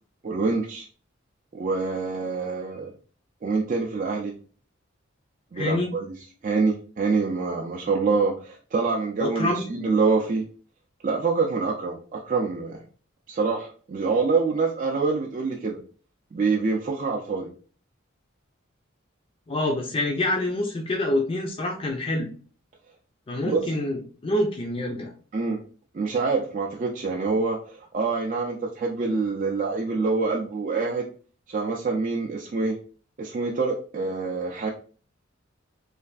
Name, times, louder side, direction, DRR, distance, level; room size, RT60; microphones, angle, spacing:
voice 1, 0.2-0.9 1.5-2.9 3.4-4.3 5.5-6.2 6.4-10.4 11.0-12.8 13.3-15.8 16.3-17.5 23.4-23.7 25.3-25.6 25.9-31.0 31.5-32.8 33.2-34.7, right 4 dB, 40° right, -1 dB, 0.4 m, -26 dB
voice 2, 5.6-5.9 9.2-9.6 19.5-22.3 23.3-25.1, left 1 dB, 25° left, 0 dB, 0.4 m, -26 dB
3.2 x 2.4 x 2.4 m, 0.40 s
head